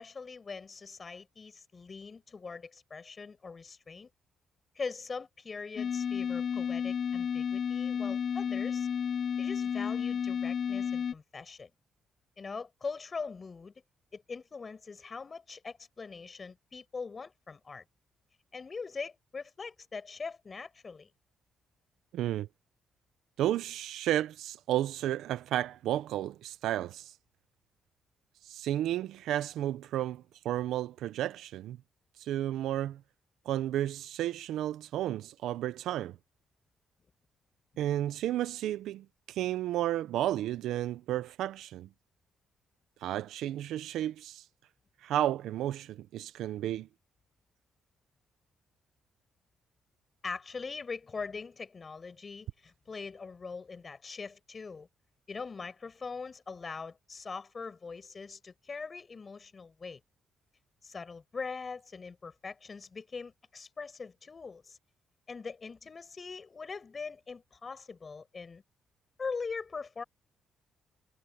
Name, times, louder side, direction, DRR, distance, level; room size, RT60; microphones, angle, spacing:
voice 1, 0.0-4.1 4.8-8.9 9.4-11.7 12.4-13.7 14.1-17.8 18.5-21.1 37.7-37.8 50.2-54.9 55.3-60.0 60.8-64.8 65.3-68.6 69.2-70.0, left 4 dB, 35° left, 5.3 m, -42 dB
sound 1, 5.8-11.1, left 7 dB, 55° left, 0.3 m, -32 dB
voice 2, 22.1-22.5 23.4-27.1 28.5-31.8 32.2-33.0 33.5-36.2 37.8-41.9 43.0-44.4 45.0-46.9, right 12 dB, 85° right, 0.6 m, -32 dB
cardioid pair, 90°, 0 cm